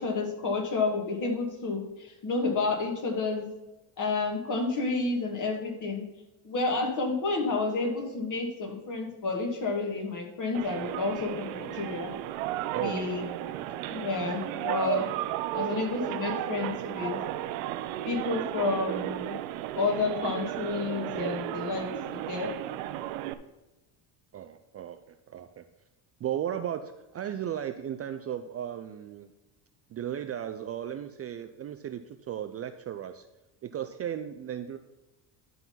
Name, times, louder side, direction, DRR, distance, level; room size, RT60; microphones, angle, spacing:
voice 1, 0.0-3.5 4.0-6.0 6.4-12.1 12.8-13.2 13.9-15.1 15.5-17.2 18.1-19.4 19.7-22.5, left 3 dB, 40° left, 2 dB, 2.5 m, -30 dB
sound 1, 10.5-23.3, right 13 dB, 80° right, 0.8 m, -34 dB
voice 2, 12.7-13.1 13.5-13.6 24.3-25.6 26.2-29.3 29.9-33.3 33.6-34.8, right 10 dB, 30° right, 9 dB, 0.4 m, -35 dB
11.5 x 4.0 x 5.7 m, 1.0 s
supercardioid pair, 105°, 47 cm